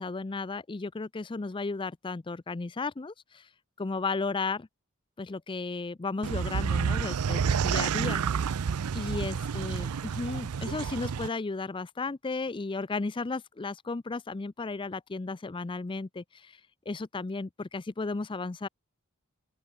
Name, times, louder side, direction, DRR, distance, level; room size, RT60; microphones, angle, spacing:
voice 1, 0.0-3.5 3.8-4.7 5.2-8.2 8.9-16.6 16.9-18.7, left 3 dB, 20° left, 0.4 m, -34 dB
sound 1, 6.2-11.3, right 6 dB, 90° right, 0.5 m, -29 dB
open air
head